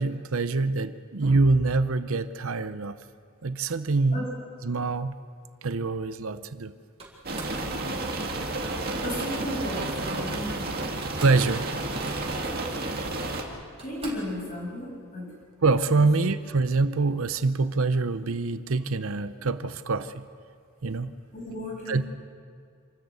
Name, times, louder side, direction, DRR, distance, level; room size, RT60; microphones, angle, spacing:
voice 1, 0.0-3.0 3.4-4.3 4.6-5.2 5.6-6.7 11.2-11.6 15.3-20.2 20.8-21.1 21.9-22.0, right 3 dB, 70° right, 12 dB, 0.7 m, -25 dB
Slam, 7.0-7.6 9.0-9.4 10.5-10.6 10.9-11.5 11.8-12.5 13.2-13.3 13.8-14.4, right 3 dB, 25° right, 4.1 m, -43 dB
sound 1, 7.2-13.4, right 2 dB, 45° right, 2.2 m, -31 dB
voice 2, 9.0-10.9 13.8-15.3 21.3-22.0, equal, 35° left, -2 dB, 7.2 m, -34 dB
27.5 x 13.5 x 8.2 m, 2.2 s
head